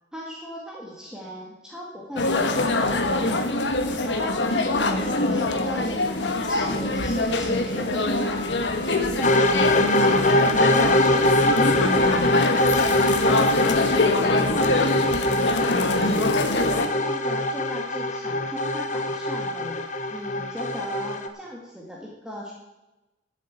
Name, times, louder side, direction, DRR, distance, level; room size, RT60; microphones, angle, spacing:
voice 1, 0.1-8.4 8.8-9.7 10.1-11.3 11.7-12.4 14.1-22.5, equal, 5° right, -3 dB, 1.9 m, -37 dB
sound 1, 2.2-16.9, left 2 dB, 85° left, 1.3 m, -24 dB
sound 2, 9.2-21.3, left 1 dB, 45° left, 1.1 m, -23 dB
12.0 x 7.4 x 8.3 m, 1.0 s
head